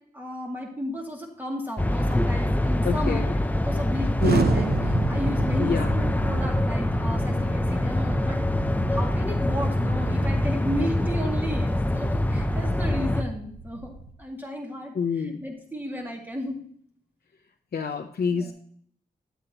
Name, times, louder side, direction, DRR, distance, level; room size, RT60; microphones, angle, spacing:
voice 1, 0.1-3.2 3.6-8.4 8.9-13.9 14.2-16.6 18.3-18.5, equal, 10° right, 0 dB, 2.4 m, -33 dB
sound 1, 1.8-13.2, left 1 dB, 10° left, 0.5 m, -25 dB
voice 2, 2.8-3.3 4.2-4.6 5.6-5.9 14.9-15.4 17.7-18.5, left 6 dB, 70° left, 4 dB, 0.6 m, -27 dB
Explosion, 4.2-14.1, right 4 dB, 70° right, 1.0 m, -33 dB
10.0 x 7.8 x 2.9 m, 0.62 s
wide cardioid pair, 80°, 17 cm